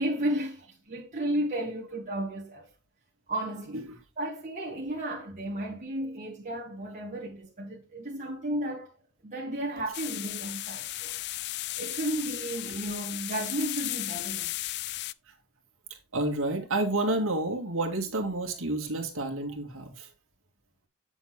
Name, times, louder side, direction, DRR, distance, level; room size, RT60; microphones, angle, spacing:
voice 1, 0.0-2.7 3.3-3.9 4.2-8.9 9.2-11.2 11.8-14.5, right 1 dB, 35° right, 1.8 m, -33 dB
sound 1, 9.9-15.1, left 16 dB, 50° left, 0.3 m, -35 dB
voice 2, 16.1-20.1, right 2 dB, 65° right, 2.2 m, -29 dB
8.0 x 7.0 x 3.5 m
head